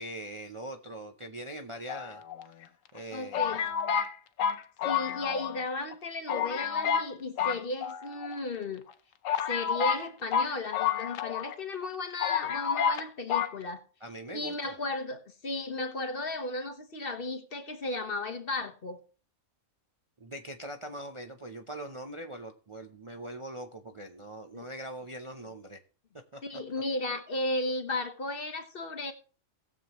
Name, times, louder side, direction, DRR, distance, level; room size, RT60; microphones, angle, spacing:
voice 1, 0.0-2.2 2.9-3.7 14.0-14.7 20.2-25.8 26.3-26.4, right 1 dB, 30° right, 0.6 m, -42 dB
sound 1, 1.9-2.6 3.3-5.6 5.9-6.0 6.3-7.1 7.4-8.3 8.9-9.0 9.2-11.5 11.8-11.9 12.2-13.0 13.3-13.5, left 8 dB, 75° left, 1.1 m, -29 dB
voice 2, 3.1-3.6 4.8-8.8 9.5-13.8 14.3-19.0 24.5-24.7 26.4-29.1, left 2 dB, 45° left, 1.2 m, -35 dB
18.5 x 7.2 x 3.0 m
omnidirectional pair, 1.4 m